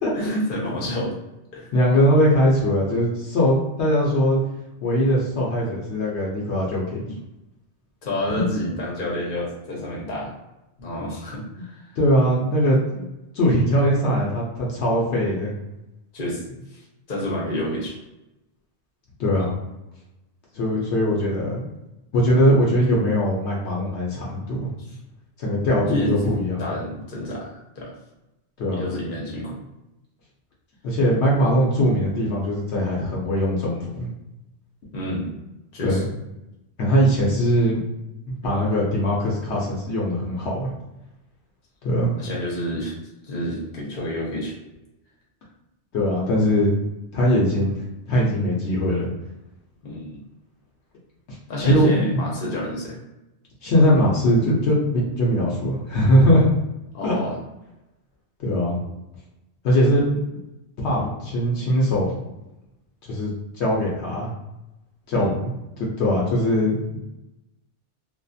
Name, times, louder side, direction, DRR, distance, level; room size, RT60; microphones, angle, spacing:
voice 1, 0.1-1.2 1.5-1.7 7.0-7.1 8.0-10.4 10.8-11.9 16.1-16.8 17.1-17.9 24.9-25.0 25.8-26.1 26.6-27.9 28.7-29.6 34.9-35.3 35.7-36.0 42.2-42.9 43.2-44.5 49.8-50.2 51.5-53.0 56.9-57.3 65.1-65.3, left 1 dB, 50° left, -4 dB, 1.0 m, -29 dB
voice 2, 1.7-4.4 4.8-7.0 8.4-8.5 12.0-13.1 13.3-15.5 19.2-19.5 20.5-21.6 22.1-24.7 25.4-26.7 28.6-28.9 30.8-34.1 35.8-36.0 36.8-37.8 38.3-40.7 41.8-42.1 45.9-46.7 47.1-47.8 48.1-49.1 51.3-52.2 53.6-56.5 57.0-57.2 58.4-58.8 59.6-60.2 60.8-62.1 63.0-63.3 63.6-64.3 65.1-65.5 65.8-67.0, equal, 75° left, -4 dB, 1.0 m, -21 dB
2.6 x 2.4 x 2.3 m, 0.93 s
omnidirectional pair, 1.2 m